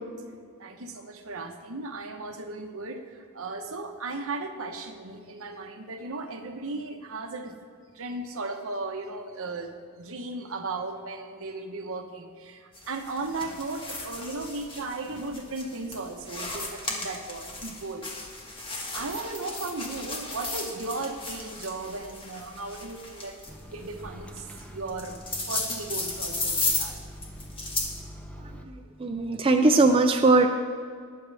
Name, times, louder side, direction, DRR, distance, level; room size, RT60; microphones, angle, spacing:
voice 1, 0.6-7.6 7.9-18.0 18.9-23.4 23.7-25.2 25.5-27.0, right 3 dB, 65° right, 4 dB, 1.1 m, -36 dB
sound 1, 12.7-28.0, left 2 dB, 25° left, 1.7 m, -35 dB
Microwave oven, 23.5-28.6, equal, 5° left, 0.9 m, -44 dB
voice 2, 29.0-30.5, right 3 dB, 25° right, 4 dB, 0.5 m, -19 dB
20.0 x 7.3 x 3.4 m, 2.2 s
head